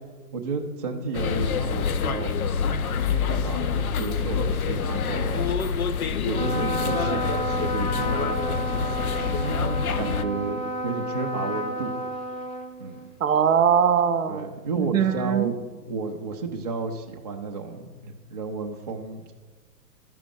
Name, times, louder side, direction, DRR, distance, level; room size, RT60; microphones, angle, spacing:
voice 1, 0.3-2.3 3.1-5.5 6.1-8.4 9.3-11.9 12.8-13.1 14.3-15.5 15.9-19.3, right 3 dB, 25° right, 0 dB, 0.4 m, -32 dB
sound 1, 1.1-10.2, left 6 dB, 60° left, 0.6 m, -26 dB
Trumpet, 6.3-13.1, right 1 dB, 25° left, 0.8 m, -31 dB
voice 2, 13.2-14.5 14.8-15.5, right 7 dB, 55° right, 11 dB, 0.7 m, -21 dB
12.5 x 5.0 x 3.6 m, 1.3 s
figure-of-eight pair, 115°, 49 cm